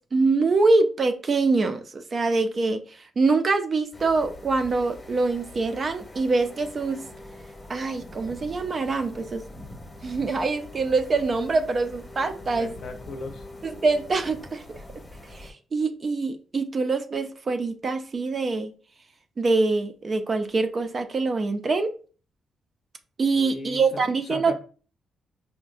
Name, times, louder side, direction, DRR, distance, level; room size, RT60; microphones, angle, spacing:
voice 1, 0.0-2.8 3.2-7.0 7.7-9.4 10.0-12.7 13.6-14.8 15.3-18.7 19.4-21.9 23.2-24.6, right 3 dB, 35° right, 0.4 m, -24 dB
sound 1, 3.9-15.5, left 2 dB, 15° left, 0.8 m, -44 dB
voice 2, 12.3-13.4 23.3-24.6, left 3 dB, 60° left, 0.6 m, -38 dB
5.4 x 2.1 x 2.5 m
cardioid pair, 145°, 0 cm